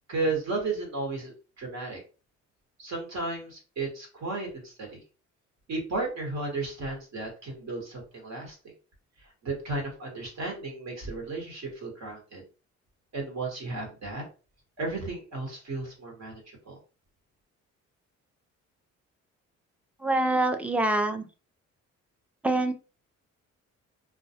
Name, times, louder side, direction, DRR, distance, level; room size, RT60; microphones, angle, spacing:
voice 1, 0.1-2.0 2.8-5.0 5.7-8.6 9.4-12.4 13.1-14.2 14.8-16.8, right 3 dB, 60° right, 0 dB, 1.1 m, -34 dB
voice 2, 20.0-21.3 22.4-22.7, right 2 dB, 5° right, 6 dB, 0.3 m, -25 dB
2.3 x 2.2 x 2.7 m, 0.34 s
cardioid pair, 90°, 30 cm